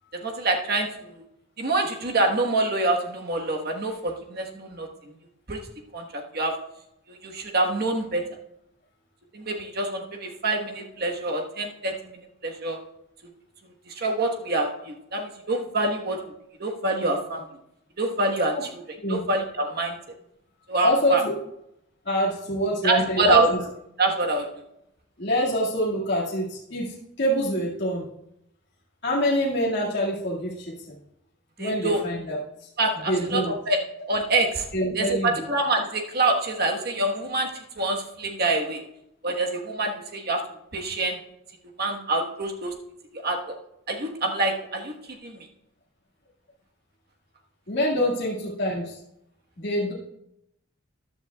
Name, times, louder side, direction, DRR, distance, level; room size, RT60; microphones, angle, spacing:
voice 1, 0.2-1.2 1.6-4.9 5.5-5.7 5.9-6.6 7.1-8.3 9.3-12.8 13.6-16.3 16.6-17.4 18.0-18.8 19.1-20.0 20.7-21.2 22.8-23.5 24.0-24.5 31.6-32.0 32.8-33.8 34.1-34.7 34.9-38.8 39.2-40.4 40.7-41.2 41.8-42.8 43.1-43.4 43.9-45.0 45.2-45.5, right 2 dB, 45° right, 2 dB, 1.3 m, -26 dB
voice 2, 20.8-21.3 22.1-23.6 25.2-28.0 29.0-30.7 31.6-32.4 33.1-33.5 34.7-35.4 47.7-48.9 49.6-49.9, equal, 55° left, -6 dB, 2.0 m, -25 dB
14.5 x 10.5 x 2.3 m, 0.80 s
head